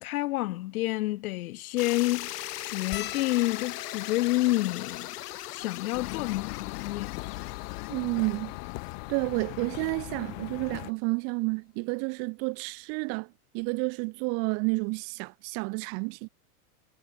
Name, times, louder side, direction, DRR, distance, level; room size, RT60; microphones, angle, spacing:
voice 1, 0.0-5.1 5.5-7.1, left 18 dB, 65° left, 1.4 m, -29 dB
sound 1, 1.8-9.8, left 15 dB, 85° left, 1.3 m, -40 dB
sound 2, 2.9-7.5 8.3-8.4 8.6-8.8 10.0-10.2 11.7-11.8 12.0-12.2, left 11 dB, 25° left, 2.6 m, -46 dB
sound 3, 5.9-10.9, left 32 dB, 50° left, 3.4 m, -39 dB
voice 2, 7.9-8.6 9.1-16.3, right 33 dB, 35° right, 0.6 m, -30 dB
supercardioid pair, 150°, 45 cm